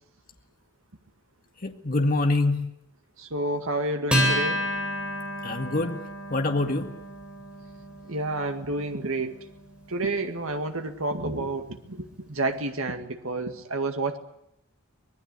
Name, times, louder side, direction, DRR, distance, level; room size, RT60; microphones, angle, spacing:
voice 1, 1.6-2.6 5.4-6.0 6.3-6.9, left 2 dB, 40° left, 4 dB, 1.9 m, -25 dB
voice 2, 3.2-4.7 8.0-9.4 9.9-14.2, right 2 dB, 75° right, 6 dB, 2.0 m, -30 dB
Acoustic guitar, 4.1-10.9, equal, 5° right, 8.0 m, -31 dB
25.0 x 19.5 x 8.5 m, 0.77 s
head